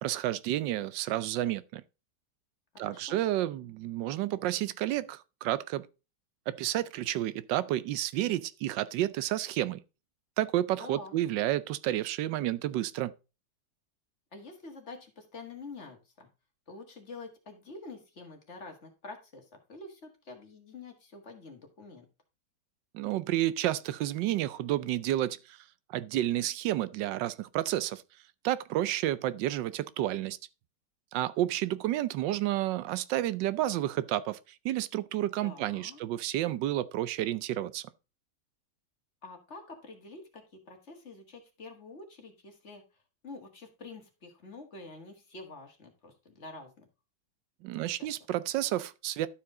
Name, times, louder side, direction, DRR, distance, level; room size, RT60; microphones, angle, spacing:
voice 1, 0.0-1.8 2.8-5.9 6.5-9.8 10.4-13.1 22.9-25.6 25.9-28.0 28.4-30.4 31.1-37.9 47.6-49.3, right 14 dB, 90° right, 1.3 m, -30 dB
voice 2, 2.7-3.2 10.8-11.2 14.3-16.3 16.7-22.1 35.3-36.0 39.2-46.9 47.8-48.1, left 3 dB, 40° left, 1.8 m, -47 dB
12.0 x 4.8 x 3.7 m
omnidirectional pair, 1.9 m